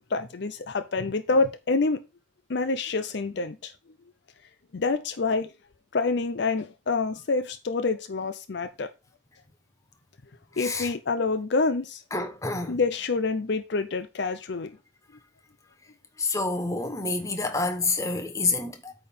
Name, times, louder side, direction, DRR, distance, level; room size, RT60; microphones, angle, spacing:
voice 1, 0.1-2.0 2.5-3.7 4.7-5.5 5.9-8.9 10.6-12.0 12.7-14.8, left 3 dB, 55° left, 0.5 m, -27 dB
voice 2, 10.5-10.9 12.1-12.8 16.2-18.9, left 3 dB, 15° left, 0.9 m, -28 dB
8.6 x 3.5 x 5.4 m
head